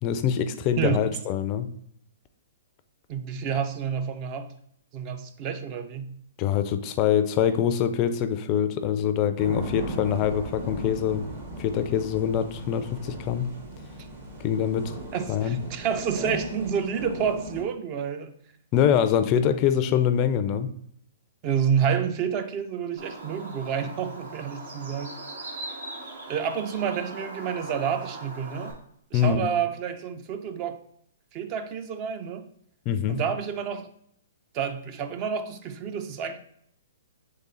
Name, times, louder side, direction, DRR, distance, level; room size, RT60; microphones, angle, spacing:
voice 1, 0.0-1.7 6.4-11.2 11.6-13.5 14.4-15.0 15.3-15.6 18.7-20.7 29.1-29.5 32.9-33.2, left 9 dB, 35° left, 0.3 m, -24 dB
voice 2, 3.1-4.5 4.9-6.1 15.1-18.3 21.4-25.2 26.3-28.7 29.1-30.8 31.3-32.5 33.1-33.9 34.5-36.4, right 7 dB, 35° right, 0.4 m, -29 dB
sound 1, 9.4-17.6, equal, 55° right, 1.7 m, -37 dB
Bird, 23.0-28.7, right 2 dB, 75° right, 1.2 m, -40 dB
3.7 x 3.3 x 4.1 m
hypercardioid pair, 125°, 0 cm